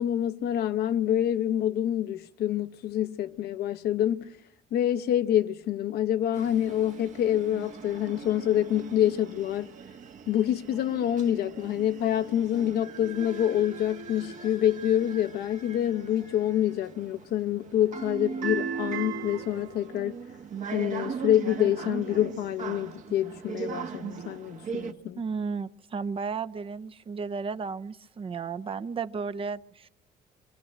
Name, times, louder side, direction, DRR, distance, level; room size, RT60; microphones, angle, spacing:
voice 1, 0.0-4.3 4.7-9.7 10.3-20.2 20.7-25.2, left 11 dB, 70° left, 0.9 m, -27 dB
sound 1, 6.3-24.9, right 6 dB, 50° right, 1.4 m, -39 dB
voice 2, 25.2-29.9, right 5 dB, 35° right, 0.8 m, -33 dB
25.5 x 15.0 x 9.0 m
cardioid pair, 110°, 17 cm